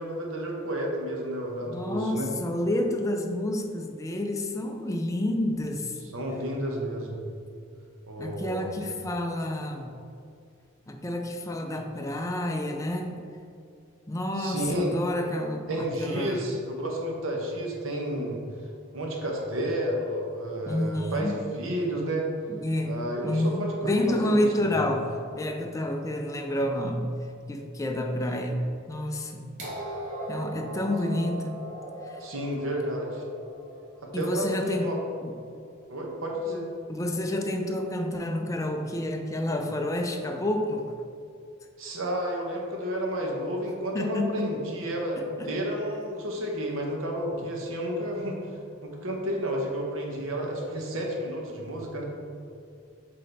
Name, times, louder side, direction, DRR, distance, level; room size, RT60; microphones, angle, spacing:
voice 1, 0.0-2.3 6.1-7.2 8.1-8.7 14.4-14.9 15.7-18.4 18.9-22.3 22.8-24.8 32.2-33.2 34.0-34.9 35.9-36.7 41.8-52.1, right 1 dB, 70° right, 0 dB, 0.9 m, -31 dB
voice 2, 1.7-6.0 8.2-10.0 10.9-13.2 14.1-16.5 20.7-21.4 22.6-23.0 23.2-27.1 27.5-29.5 30.3-31.6 32.0-32.2 34.1-34.9 35.2-35.4 36.9-40.9 43.9-44.6 45.4-45.5 47.3-47.4 50.1-50.2, left 1 dB, 15° left, 4 dB, 0.4 m, -29 dB
sound 1, 29.6-35.5 36.6-36.7, right 1 dB, 35° right, 1.0 m, -40 dB
7.8 x 3.8 x 3.4 m, 2.4 s
head